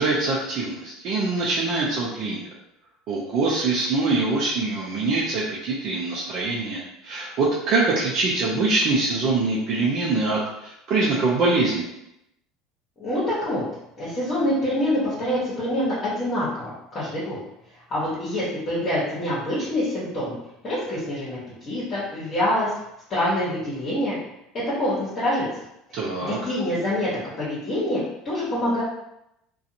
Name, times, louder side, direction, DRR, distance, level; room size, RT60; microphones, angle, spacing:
voice 1, 0.0-2.4 3.1-11.9 25.9-26.4, right 3 dB, 55° right, -5 dB, 0.6 m, -24 dB
voice 2, 13.0-13.6 14.0-17.4 17.9-20.4 20.6-21.4 21.7-22.7 23.1-24.2 24.7-25.4 26.2-27.1 27.4-28.8, left 1 dB, 35° left, -9 dB, 1.1 m, -25 dB
2.4 x 2.3 x 2.8 m, 0.83 s
supercardioid pair, 95°, 0 cm